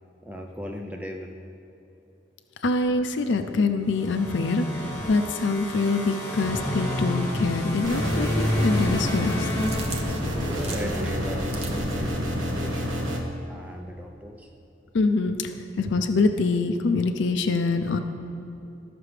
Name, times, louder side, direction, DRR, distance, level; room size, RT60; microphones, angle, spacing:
voice 1, 0.2-1.4 10.0-13.1 13.5-14.5, equal, 10° right, 2 dB, 0.4 m, -38 dB
voice 2, 2.6-9.5 14.9-18.0, left 3 dB, 65° left, 7 dB, 0.5 m, -25 dB
sound 1, 3.9-10.6, left 1 dB, 10° left, 1.6 m, -30 dB
sound 2, 7.8-13.2, equal, 90° right, 1.4 m, -28 dB
sound 3, 9.3-12.2, right 2 dB, 35° right, 0.7 m, -39 dB
14.0 x 5.9 x 3.3 m, 2.9 s
head